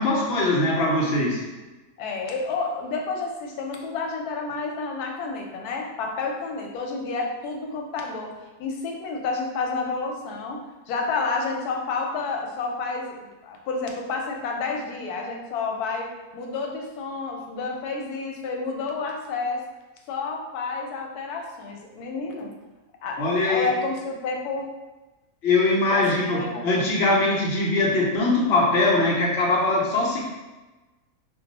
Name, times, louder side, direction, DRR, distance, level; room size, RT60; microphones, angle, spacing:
voice 1, 0.0-1.5 23.2-23.7 25.4-30.2, left 2 dB, 60° left, -3 dB, 0.7 m, -22 dB
voice 2, 2.0-10.6 10.9-16.1 16.3-19.6 20.1-22.5 23.0-24.7 25.9-26.8, left 4 dB, 85° left, 1 dB, 1.1 m, -30 dB
2.3 x 2.3 x 3.9 m, 1.1 s
omnidirectional pair, 1.6 m